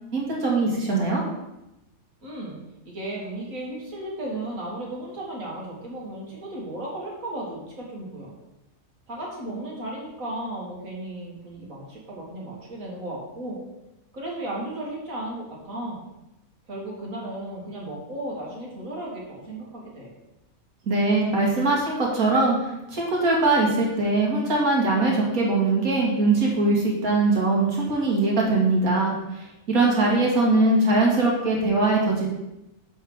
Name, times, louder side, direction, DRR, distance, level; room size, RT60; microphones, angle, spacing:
voice 1, 0.1-1.2 20.9-32.3, right 2 dB, 90° right, -3 dB, 2.5 m, -22 dB
voice 2, 2.2-2.6 2.9-8.3 9.1-13.6 14.1-16.0 16.7-20.1, right 1 dB, 70° right, -4 dB, 2.5 m, -35 dB
7.8 x 3.7 x 6.3 m, 0.92 s
omnidirectional pair, 1.5 m